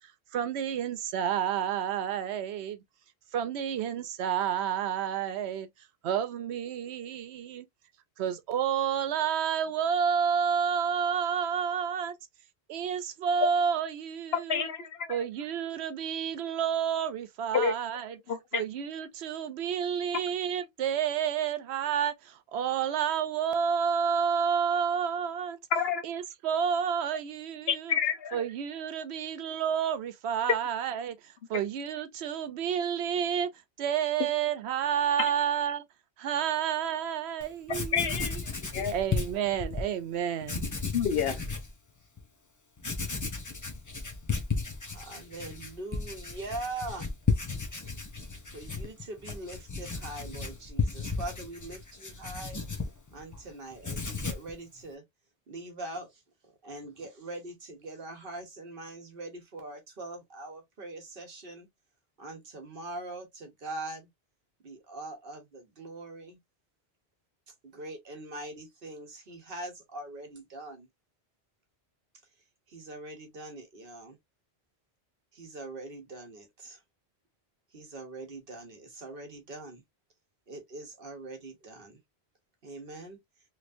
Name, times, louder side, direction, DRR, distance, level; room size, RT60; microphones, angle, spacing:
voice 1, 0.3-2.8 3.3-5.7 6.0-7.7 8.2-12.2 12.7-14.7 15.1-18.2 18.5-25.6 26.0-28.0 28.3-33.5 33.8-35.8 36.2-38.3 38.9-40.7, right 8 dB, 80° right, 0.9 m, -30 dB
voice 2, 14.3-15.2 17.5-17.7 18.3-18.6 25.7-26.0 27.7-28.4 35.2-35.3 37.9-38.9 40.9-41.4, left 7 dB, 70° left, 1.0 m, -29 dB
Writing, 37.4-37.5 37.7-39.9 40.4-41.7 42.2-42.3 42.8-53.4 53.7-54.5, left 4 dB, 25° left, 0.5 m, -34 dB
voice 3, 44.8-47.1 48.4-52.6 53.1-55.0 55.5-61.7 62.2-64.1 64.6-66.4 67.6-70.9 72.7-74.2 75.3-76.8 77.7-79.8 80.5-82.0 82.6-83.2, right 2 dB, 60° right, 1.1 m, -42 dB
3.2 x 2.9 x 2.5 m
omnidirectional pair, 1.1 m